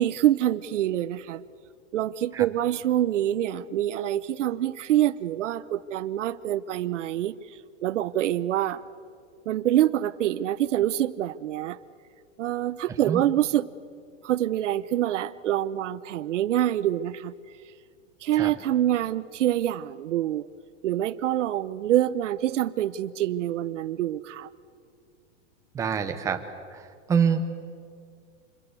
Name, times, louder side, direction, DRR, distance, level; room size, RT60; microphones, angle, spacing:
voice 1, 0.0-1.4 1.9-8.8 9.5-11.8 12.4-13.7 14.2-17.3 18.2-20.5 20.8-24.5, right 12 dB, 75° right, 14 dB, 0.9 m, -26 dB
voice 2, 25.7-26.4 26.7-27.4, right 7 dB, 10° right, 7 dB, 0.8 m, -26 dB
26.5 x 21.5 x 8.2 m, 2.2 s
supercardioid pair, 175°, 36 cm